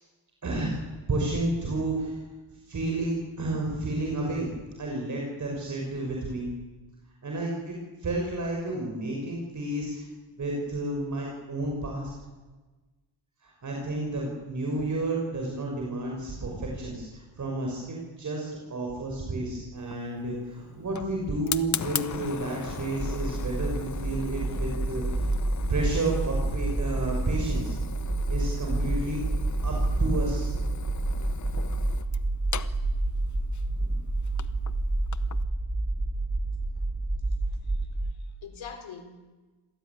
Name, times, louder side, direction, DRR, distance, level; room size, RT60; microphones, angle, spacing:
voice 1, 0.4-0.8 1.1-2.2 2.7-6.5 7.2-7.7 8.0-10.1 10.4-12.1 13.4-25.2 25.7-27.8 28.3-29.2 29.6-30.5 33.7-34.0, right 2 dB, 35° right, 5.7 m, -31 dB
Fire, 19.8-35.4, left 8 dB, 35° left, 0.9 m, -39 dB
sound 1, 23.0-38.1, right 2 dB, 15° right, 2.3 m, -29 dB
voice 2, 37.5-39.2, left 6 dB, 65° left, 3.8 m, -45 dB
26.5 x 17.5 x 9.4 m
wide cardioid pair, 150°, 49 cm